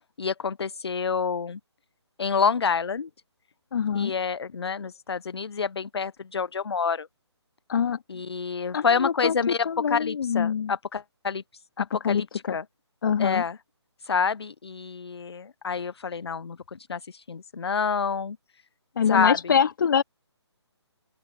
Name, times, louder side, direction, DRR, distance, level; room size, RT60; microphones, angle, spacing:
voice 1, 0.2-1.6 2.2-3.1 3.9-7.1 8.1-11.6 12.0-12.6 13.2-13.6 14.0-18.4 19.1-19.6, left 5 dB, 60° left, 0.8 m, -28 dB
voice 2, 3.7-4.1 7.7-8.0 8.7-9.4 9.6-10.7 11.8-12.6 13.0-13.4 19.0-20.0, left 7 dB, 45° left, 2.6 m, -25 dB
open air
figure-of-eight pair, 150°, 15 cm